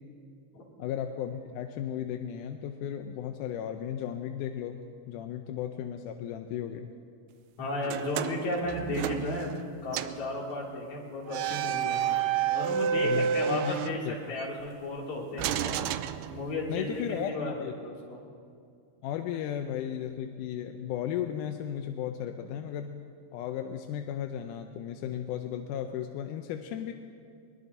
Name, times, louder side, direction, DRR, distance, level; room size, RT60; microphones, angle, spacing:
voice 1, 0.8-6.9 13.0-13.7 14.0-14.2 16.7-17.7 19.0-23.0 23.3-26.9, left 10 dB, 80° left, 5 dB, 2.1 m, -35 dB
voice 2, 7.6-12.1 12.5-14.0 14.3-15.8 16.3-17.0 17.3-18.2 22.4-22.5, left 2 dB, 60° left, -3 dB, 3.9 m, -34 dB
sound 1, 7.8-9.7 9.9-10.3 11.3-14.5 15.4-16.8, right 8 dB, 80° right, 2.0 m, -30 dB
23.5 x 21.0 x 2.7 m, 2.3 s
omnidirectional pair, 3.8 m